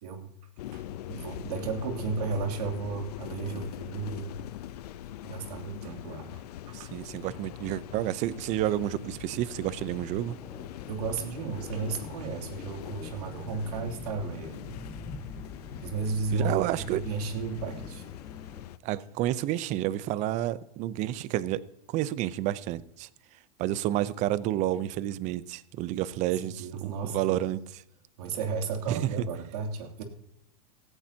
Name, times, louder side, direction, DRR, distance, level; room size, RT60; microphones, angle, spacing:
sound 1, 0.6-18.8, left 12 dB, 75° left, 0.7 m, -42 dB
voice 1, 1.1-4.4 5.2-6.4 6.7-6.9 10.9-14.8 15.8-16.6 16.9-18.0 26.4-27.5 28.2-30.0, right 4 dB, 75° right, 3 dB, 2.9 m, -34 dB
voice 2, 6.7-10.4 16.3-17.0 18.8-21.6 21.9-23.1 23.6-27.6 28.9-29.1, right 14 dB, 35° right, 17 dB, 0.7 m, -30 dB
sound 2, 9.3-18.6, left 3 dB, 15° left, 1.5 m, -45 dB
17.0 x 15.0 x 2.9 m, 0.74 s
supercardioid pair, 145°, 20 cm